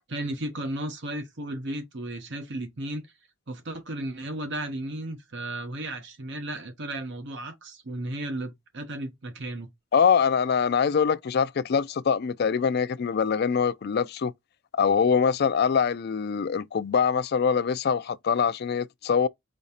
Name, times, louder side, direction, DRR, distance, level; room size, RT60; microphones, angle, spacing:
voice 1, 0.1-3.0 3.5-9.7, right 1 dB, 55° right, 1.0 m, -34 dB
voice 2, 9.9-14.3 14.8-19.3, left 6 dB, 45° left, 0.3 m, -24 dB
5.1 x 3.0 x 2.8 m
head